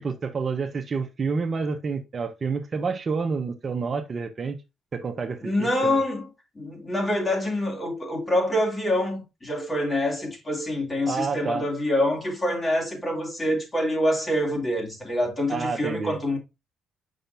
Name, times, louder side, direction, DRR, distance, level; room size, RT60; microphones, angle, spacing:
voice 1, 0.0-4.6 4.9-6.0 11.0-11.7 15.5-16.2, right 5 dB, 40° right, 0.9 m, -29 dB
voice 2, 5.4-6.2 6.5-16.4, left 1 dB, 25° left, 2.6 m, -26 dB
6.6 x 5.6 x 2.6 m
cardioid pair, 90°, 0 cm